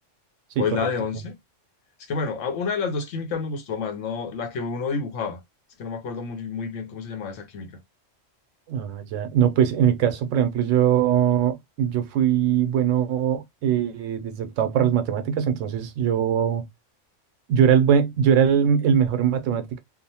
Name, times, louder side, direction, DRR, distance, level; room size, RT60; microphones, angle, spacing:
voice 1, 0.6-1.3 2.1-5.4 5.8-7.7, left 5 dB, 80° left, 1.0 m, -29 dB
voice 2, 8.7-16.6 17.5-19.8, right 9 dB, 80° right, 0.9 m, -21 dB
2.7 x 2.0 x 2.7 m
omnidirectional pair, 1.3 m